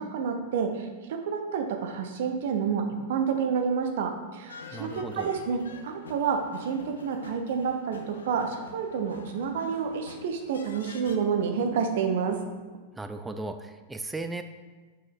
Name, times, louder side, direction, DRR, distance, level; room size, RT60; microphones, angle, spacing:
voice 1, 0.0-12.4, right 6 dB, 55° right, 5 dB, 0.8 m, -29 dB
sound 1, 4.5-11.2, left 5 dB, 70° left, 0.7 m, -47 dB
voice 2, 4.7-5.3 12.9-14.4, right 2 dB, 10° right, 8 dB, 0.4 m, -36 dB
5.4 x 5.3 x 3.7 m, 1.3 s
figure-of-eight pair, 95°, 0 cm